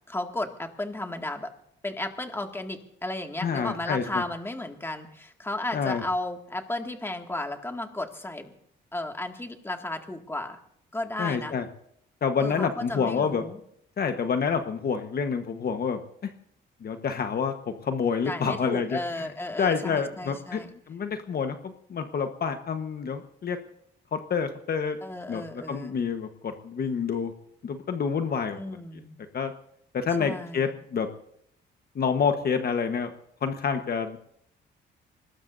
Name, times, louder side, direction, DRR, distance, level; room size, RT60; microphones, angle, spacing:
voice 1, 0.1-1.5 1.8-8.5 8.9-10.6 10.9-11.6 12.4-13.6 18.3-20.7 25.0-26.0 28.6-29.2 30.2-30.8, left 1 dB, 10° left, 4 dB, 2.1 m, -34 dB
voice 2, 3.4-4.0 5.7-6.0 11.2-11.6 12.2-13.4 14.0-16.0 16.8-19.0 19.6-20.6 20.9-23.6 24.1-25.0 25.3-27.3 27.6-28.6 29.3-29.5 29.9-31.1 32.0-33.1 33.4-34.2, left 6 dB, 50° left, 7 dB, 1.3 m, -28 dB
25.0 x 19.5 x 2.7 m, 0.71 s
cardioid pair, 90°, 20 cm